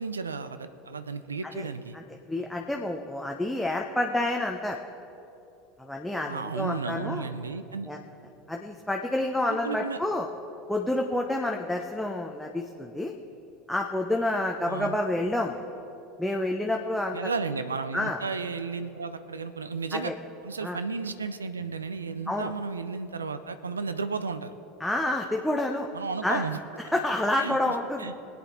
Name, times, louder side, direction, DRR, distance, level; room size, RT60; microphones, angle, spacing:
voice 1, 0.0-2.0 6.3-7.9 9.5-10.0 14.7-15.0 17.1-20.1 20.4-24.5 25.9-26.6 27.4-28.1, right 4 dB, 85° right, 12 dB, 0.5 m, -33 dB
voice 2, 2.3-4.8 5.8-7.3 7.9-8.0 8.5-10.3 10.7-13.1 13.7-15.6 16.2-17.2 17.9-18.2 19.9-20.1 20.6-20.8 22.3-22.5 24.8-25.9 26.2-26.4 26.9-28.1, left 1 dB, 5° left, 1 dB, 0.9 m, -28 dB
21.0 x 8.6 x 4.3 m, 2.9 s
figure-of-eight pair, 75°, 0 cm